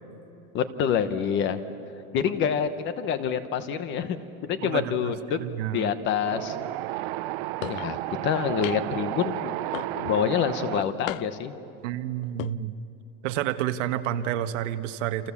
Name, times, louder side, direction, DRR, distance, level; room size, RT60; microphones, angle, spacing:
voice 1, 0.5-1.6 2.1-4.2 4.4-5.4 5.7-6.6 7.6-9.6 9.9-11.5, left 8 dB, 30° left, 11 dB, 1.0 m, -27 dB
voice 2, 4.6-5.9 11.8-12.7 13.2-15.3, right 11 dB, 70° right, 9 dB, 1.3 m, -30 dB
Wind, 6.3-10.8, right 17 dB, 50° right, 0.6 m, -32 dB
sound 1, 7.6-7.9 8.6-9.0 9.7-10.2 11.1-11.5 12.2-12.5, left 18 dB, 85° left, 0.6 m, -35 dB
29.0 x 27.5 x 7.2 m, 2.9 s
supercardioid pair, 175°, 39 cm